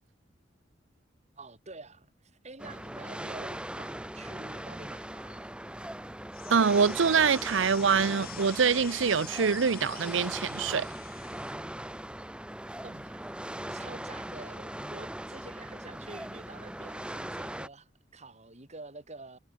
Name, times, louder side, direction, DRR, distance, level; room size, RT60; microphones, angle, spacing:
voice 1, 1.4-5.5 12.8-13.3 13.7-19.4, right 3 dB, 40° right, 3.7 m, -48 dB
sound 1, 2.6-17.7, right 1 dB, 5° right, 1.1 m, -40 dB
sound 2, 6.3-11.6, left 12 dB, 55° left, 4.9 m, -46 dB
voice 2, 6.5-10.9, right 6 dB, 90° right, 0.6 m, -25 dB
head